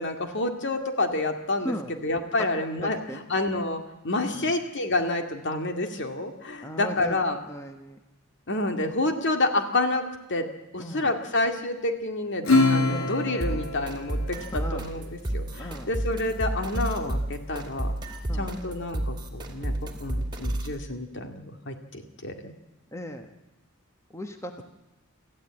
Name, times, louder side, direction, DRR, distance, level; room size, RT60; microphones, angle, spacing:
voice 1, 0.0-7.4 8.5-10.0 10.3-10.5 10.7-17.9 18.4-22.5, left 2 dB, 55° left, 6 dB, 2.2 m, -29 dB
voice 2, 1.6-1.9 2.4-2.5 2.8-3.2 4.3-4.5 6.6-7.2 7.5-8.0 10.8-11.1 12.9-13.1 14.4-14.9 15.6-15.9 17.1-17.2 18.1-18.5 22.9-23.3 24.1-24.6, equal, 15° left, 6 dB, 1.2 m, -37 dB
Acoustic guitar / Strum, 12.4-15.4, left 2 dB, 70° left, 3.5 m, -25 dB
sound 1, 13.4-20.8, right 1 dB, 20° right, 2.6 m, -31 dB
25.0 x 14.5 x 8.8 m, 1.0 s
head